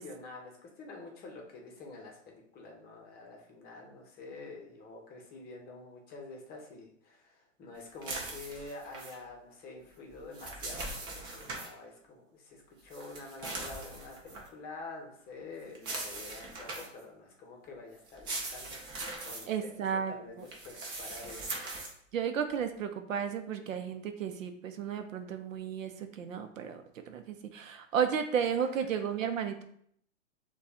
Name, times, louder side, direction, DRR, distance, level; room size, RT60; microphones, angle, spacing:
voice 1, 0.0-21.6, left 3 dB, 25° left, 1 dB, 0.9 m, -48 dB
sound 1, 8.0-9.2 10.1-11.7 12.9-14.5 15.7-17.0 18.1-19.4 20.4-21.9, right 2 dB, 15° right, 0.3 m, -40 dB
voice 2, 19.5-20.5 22.1-29.6, right 7 dB, 80° right, 7 dB, 0.7 m, -33 dB
6.4 x 2.3 x 2.8 m, 0.65 s
hypercardioid pair, 120°, 39 cm